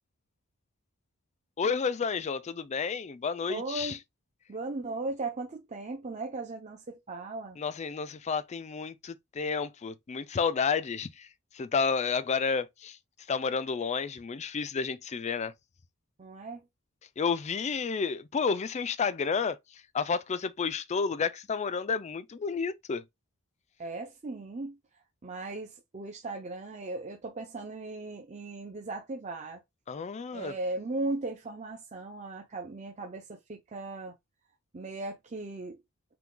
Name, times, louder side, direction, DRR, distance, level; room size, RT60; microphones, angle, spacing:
voice 1, 1.6-4.0 7.6-11.3 11.5-13.0 13.3-15.5 17.2-19.6 19.9-23.0 29.9-30.5, left 5 dB, 30° left, 0.4 m, -31 dB
voice 2, 3.5-4.0 4.5-7.6 16.2-16.6 23.8-24.8 25.2-29.6 30.3-34.1 34.7-35.8, right 2 dB, 30° right, 0.6 m, -37 dB
5.8 x 2.3 x 3.8 m
head